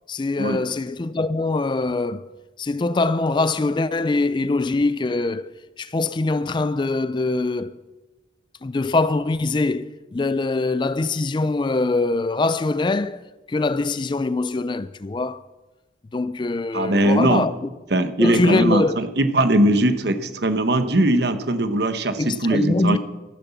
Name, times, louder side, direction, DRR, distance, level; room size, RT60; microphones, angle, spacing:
voice 1, 0.1-2.3 2.6-5.5 5.8-7.8 8.6-13.2 13.5-15.4 16.1-17.5 18.2-19.0 22.2-23.0, left 3 dB, 25° left, 0.3 m, -23 dB
voice 2, 16.7-17.5 17.9-23.0, right 1 dB, 55° right, 1.1 m, -20 dB
14.0 x 10.0 x 7.0 m
head